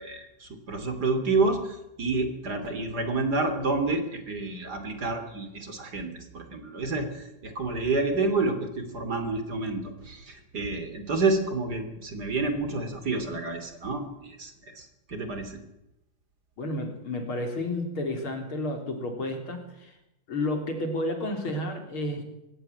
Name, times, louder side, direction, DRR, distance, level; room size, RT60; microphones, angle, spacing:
voice 1, 0.0-15.6, right 3 dB, 50° right, 8 dB, 3.5 m, -29 dB
voice 2, 16.6-19.9 20.3-22.2, left 1 dB, 80° left, 5 dB, 4.5 m, -31 dB
20.5 x 17.0 x 9.7 m, 0.90 s
omnidirectional pair, 2.3 m